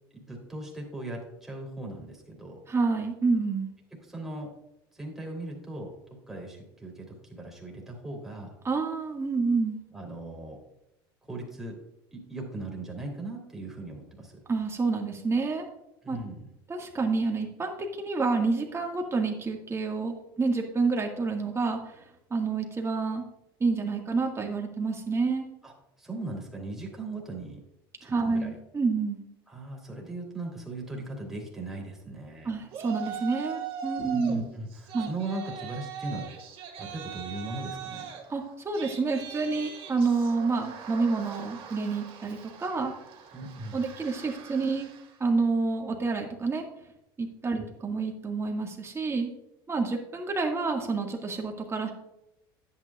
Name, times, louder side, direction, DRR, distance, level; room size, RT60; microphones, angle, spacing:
voice 1, 0.1-2.6 4.1-4.5 4.9-5.9 6.3-8.5 9.9-10.6 11.3-11.8 12.1-14.4 16.0-16.4 25.6-25.7 26.0-27.6 28.0-28.5 29.5-32.5 34.0-36.3 36.8-38.0 43.3-43.8 47.6-47.7, right 2 dB, 5° right, -2 dB, 3.4 m, -38 dB
voice 2, 2.7-3.7 8.6-9.8 14.5-15.7 16.1-16.2 16.7-22.0 22.3-23.2 23.6-25.5 28.0-29.2 32.4-34.5 34.9-35.1 38.3-42.9 43.7-44.9 45.2-46.6 47.2-49.3 49.7-51.9, right 4 dB, 20° right, 1 dB, 2.0 m, -28 dB
Yell, 32.7-34.4 34.7-45.2, right 8 dB, 50° right, 2.1 m, -41 dB
10.5 x 8.7 x 2.5 m, 0.84 s
hypercardioid pair, 85°, 12 cm